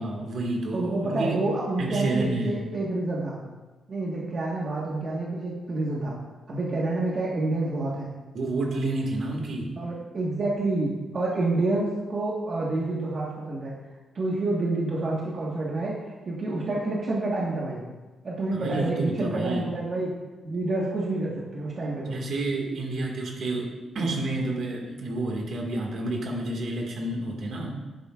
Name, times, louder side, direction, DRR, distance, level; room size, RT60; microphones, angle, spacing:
voice 1, 0.0-1.4 1.8-2.7 8.3-9.8 18.5-19.7 22.1-27.7, right 2 dB, 65° right, 0 dB, 2.0 m, -29 dB
voice 2, 0.7-3.4 3.9-6.1 6.5-8.1 9.8-13.7 14.1-17.8 18.2-20.1 20.4-22.2, right 2 dB, 45° right, -4 dB, 1.5 m, -28 dB
11.0 x 10.5 x 2.5 m, 1.2 s
cardioid pair, 130°, 0 cm